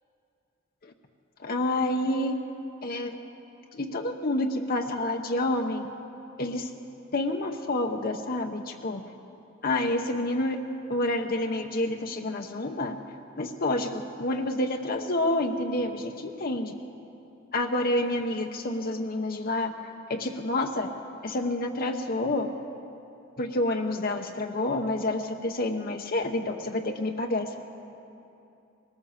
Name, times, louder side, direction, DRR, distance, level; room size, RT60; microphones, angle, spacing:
voice 1, 1.4-2.3 2.8-3.2 3.7-5.9 6.4-6.7 7.1-9.0 9.6-10.6 10.9-13.0 13.4-16.7 17.5-19.7 20.1-20.9 21.2-22.5 23.4-27.6, left 1 dB, 50° left, 3 dB, 0.9 m, -28 dB
20.0 x 18.0 x 7.3 m, 2.8 s
head